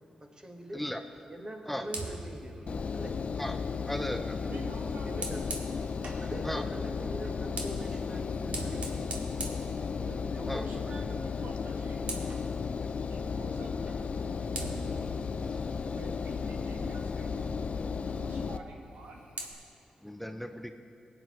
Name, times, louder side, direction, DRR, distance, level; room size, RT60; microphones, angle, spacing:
voice 1, 0.2-0.9 1.3-3.2 4.4-4.8 5.0-5.5 6.2-9.7 10.2-11.1, equal, 30° right, 2 dB, 1.6 m, -43 dB
Fire, 1.8-6.3 7.2-10.5 10.8-11.1 11.4-12.5 13.9-14.0 14.5-16.9 18.7-19.5, right 2 dB, 65° right, 1.9 m, -43 dB
Engine, 2.7-18.6, left 5 dB, 55° left, 0.5 m, -34 dB
voice 2, 3.8-4.4 6.5-6.6 10.5-10.6 12.8-12.9 15.5-15.7 20.0-20.7, left 1 dB, 5° left, 6 dB, 0.6 m, -36 dB
voice 3, 4.5-5.3 9.9-12.1 13.1-14.2 15.9-17.6 18.1-19.3, right 3 dB, 85° right, 1 dB, 1.3 m, -49 dB
19.5 x 9.2 x 3.2 m, 2.6 s
cardioid pair, 55°, 2 cm